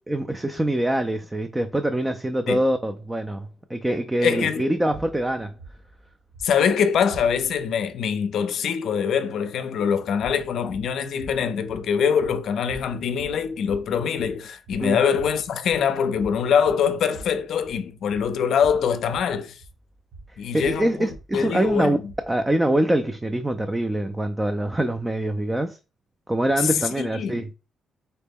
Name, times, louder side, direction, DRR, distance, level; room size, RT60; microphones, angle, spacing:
voice 1, 0.1-5.5 14.8-15.0 20.5-22.0 22.3-25.8 26.3-27.5, right 1 dB, 15° right, 0.4 m, -24 dB
voice 2, 4.2-4.7 6.4-19.6 20.4-22.0 26.6-27.5, left 7 dB, 70° left, 0.4 m, -24 dB
sound 1, 4.9-7.7 10.1-22.5, right 2 dB, 60° right, 1.8 m, -45 dB
4.1 x 2.1 x 3.4 m
cardioid pair, 90°, 0 cm